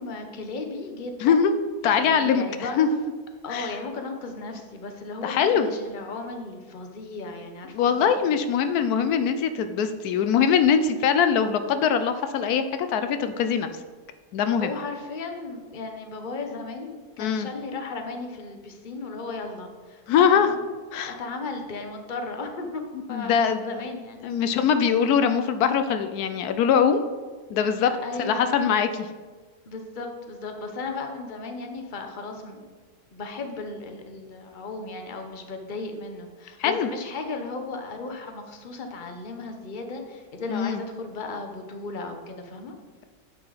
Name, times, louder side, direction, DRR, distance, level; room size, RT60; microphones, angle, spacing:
voice 1, 0.0-1.4 1.8-2.9 3.4-8.1 14.6-20.6 21.0-22.8 23.1-24.3 24.7-24.8 28.0-28.8 29.7-32.6 33.1-42.7, left 3 dB, 35° left, 5 dB, 1.0 m, -35 dB
voice 2, 1.2-1.5 1.8-2.9 3.5-3.7 5.2-5.7 7.7-13.7 14.3-14.7 17.2-17.5 20.1-20.5 20.9-21.2 23.1-23.6 24.2-27.0 27.5-27.9 28.2-29.1 36.6-36.9 40.5-40.8, left 7 dB, 80° left, 9 dB, 1.1 m, -22 dB
9.5 x 7.6 x 4.0 m, 1.4 s
omnidirectional pair, 1.6 m